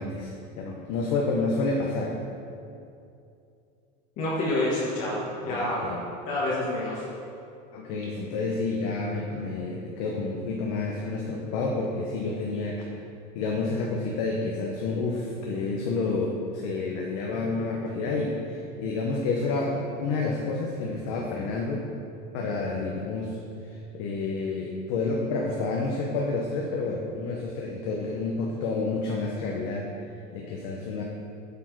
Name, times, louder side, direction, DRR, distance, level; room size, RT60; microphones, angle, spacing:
voice 1, 0.0-2.2 5.4-6.0 7.7-12.8 13.3-21.9 22.3-23.4 23.6-29.9 30.3-31.0, left 3 dB, 65° left, -1 dB, 0.8 m, -29 dB
voice 2, 4.2-5.8 6.3-7.1, left 1 dB, 40° left, -6 dB, 1.1 m, -28 dB
8.2 x 4.3 x 4.6 m, 2.6 s
cardioid pair, 155°, 20 cm